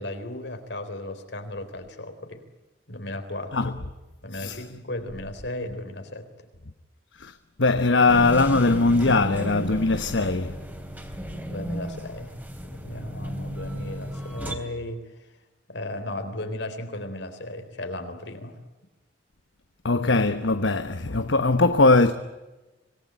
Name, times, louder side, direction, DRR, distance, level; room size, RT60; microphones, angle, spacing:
voice 1, 0.0-2.4 2.9-3.7 4.2-6.5 11.5-12.3 12.6-15.3 15.7-18.6, left 1 dB, 70° left, 3.9 m, -35 dB
voice 2, 4.3-4.6 7.2-7.3 7.6-10.6 19.8-22.1, left 3 dB, 90° left, 1.2 m, -20 dB
sound 1, 8.1-14.6, equal, 10° right, 3.4 m, -34 dB
26.5 x 19.0 x 9.1 m
head